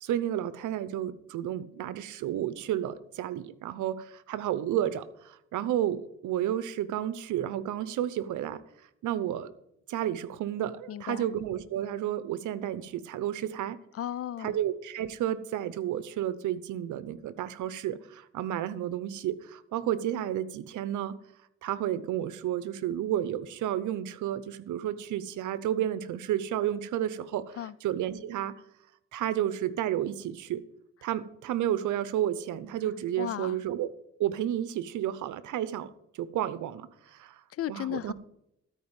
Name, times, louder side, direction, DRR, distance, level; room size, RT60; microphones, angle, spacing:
voice 1, 0.0-8.6 9.0-9.5 9.9-13.8 14.4-21.1 21.6-27.6 27.8-28.5 29.1-30.6 31.0-33.9 34.2-37.4 37.7-38.1, right 11 dB, 80° right, 0.9 m, -31 dB
voice 2, 10.9-11.3 13.9-14.6 27.5-27.7 33.2-33.6 37.5-38.1, left 11 dB, 50° left, 0.4 m, -35 dB
13.0 x 4.8 x 8.9 m
cardioid pair, 90°, 30 cm